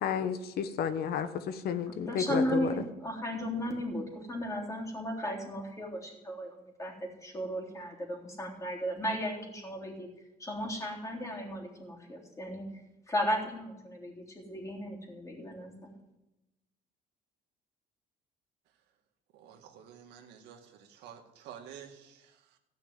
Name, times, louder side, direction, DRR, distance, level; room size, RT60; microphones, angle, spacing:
voice 1, 0.0-2.7, left 7 dB, 70° left, 12 dB, 0.9 m, -32 dB
voice 2, 1.9-10.1 10.4-12.7 13.1-15.9, equal, 20° left, -1 dB, 3.7 m, -35 dB
voice 3, 19.3-22.6, right 8 dB, 90° right, 4 dB, 2.0 m, -50 dB
15.0 x 6.0 x 9.5 m, 0.95 s
cardioid pair, 110°, 17 cm